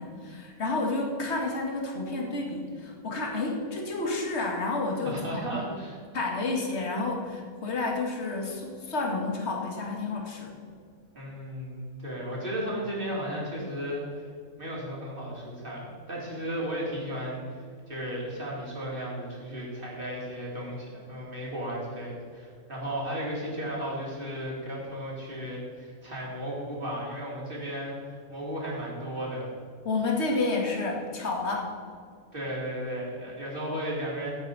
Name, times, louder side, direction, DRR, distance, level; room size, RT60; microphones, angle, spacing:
voice 1, 0.0-5.7 6.1-10.6 29.8-31.7, left 3 dB, 50° left, 0 dB, 2.1 m, -30 dB
voice 2, 5.0-6.0 11.1-14.2 14.6-17.4 17.9-29.5 32.3-34.3, equal, 35° right, -5 dB, 3.5 m, -34 dB
15.5 x 8.5 x 4.1 m, 2.1 s
omnidirectional pair, 1.5 m